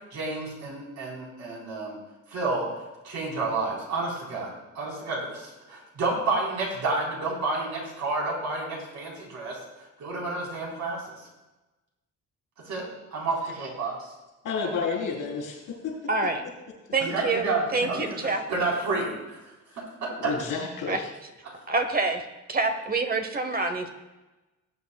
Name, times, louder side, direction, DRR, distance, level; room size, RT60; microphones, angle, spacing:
voice 1, 0.1-2.0 2.3-9.6 10.0-11.1 12.6-12.8 13.1-14.1 17.0-19.4 19.8-20.3, right 3 dB, 65° right, -3 dB, 4.2 m, -30 dB
voice 2, 14.4-15.9 20.2-21.1, left 5 dB, 90° left, -1 dB, 4.1 m, -30 dB
voice 3, 16.1-16.4 16.9-18.4 20.9-21.0 21.7-22.2 22.5-23.9, right 3 dB, 30° right, 7 dB, 1.0 m, -26 dB
19.0 x 8.4 x 2.3 m, 1.1 s
cardioid pair, 130°, 30 cm